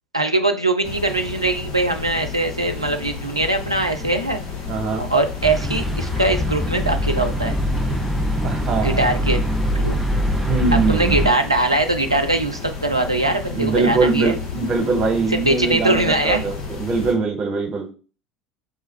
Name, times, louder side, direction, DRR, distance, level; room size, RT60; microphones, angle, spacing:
voice 1, 0.1-4.4 5.0-7.6 8.8-9.4 9.7-10.0 10.9-14.4 15.3-16.6, right 2 dB, 90° right, 5 dB, 0.4 m, -21 dB
sound 1, 0.8-17.1, left 5 dB, 50° left, 1.1 m, -32 dB
voice 2, 4.7-5.0 8.4-9.0 10.5-11.2 13.5-17.9, right 4 dB, 35° right, 2 dB, 1.2 m, -22 dB
sound 2, 5.4-11.3, equal, ahead, 0.6 m, -23 dB
5.5 x 2.3 x 3.1 m, 0.36 s
figure-of-eight pair, 65°, 3 cm